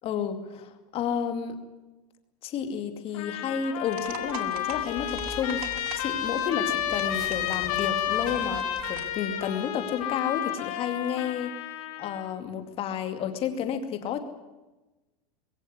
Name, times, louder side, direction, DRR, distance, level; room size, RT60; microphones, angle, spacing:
voice 1, 0.0-1.6 2.4-11.5 12.0-14.2, left 8 dB, 30° left, 8 dB, 2.4 m, -31 dB
Trumpet, 3.1-12.3, left 11 dB, 60° left, 3.9 m, -31 dB
sound 1, 3.9-9.2, right 10 dB, 65° right, 2.6 m, -45 dB
sound 2, 4.0-9.5 9.7-10.0, right 2 dB, 20° right, 3.6 m, -45 dB
21.5 x 16.5 x 9.7 m, 1.1 s
supercardioid pair, 160°, 20 cm